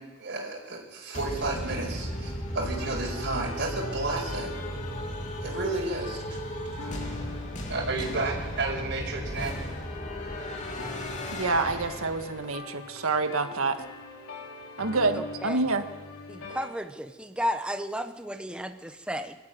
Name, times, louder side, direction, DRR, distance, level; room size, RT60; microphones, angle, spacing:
voice 1, 0.0-4.5 5.4-6.4 7.5-9.6, right 2 dB, 55° right, -2 dB, 4.9 m, -32 dB
sound 1, 1.1-12.5, equal, 35° left, 2.7 m, -36 dB
sound 2, 1.3-16.7, left 3 dB, 90° left, 5.2 m, -43 dB
voice 2, 11.3-13.8 14.8-15.8, right 3 dB, 90° right, 7 dB, 1.8 m, -27 dB
voice 3, 15.1-15.7 16.3-19.4, equal, 5° right, 7 dB, 0.9 m, -33 dB
23.0 x 13.5 x 9.4 m, 1.1 s
head